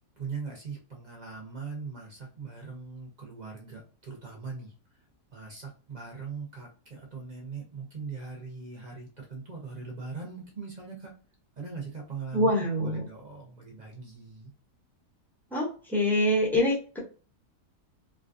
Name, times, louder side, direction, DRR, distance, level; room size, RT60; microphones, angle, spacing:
voice 1, 0.2-4.7 5.3-11.1 11.6-12.5 12.8-14.5, right 5 dB, 40° right, -1 dB, 0.7 m, -40 dB
voice 2, 12.3-13.0 15.5-17.0, left 1 dB, ahead, -3 dB, 0.5 m, -25 dB
3.4 x 2.3 x 2.5 m, 0.37 s
omnidirectional pair, 1.7 m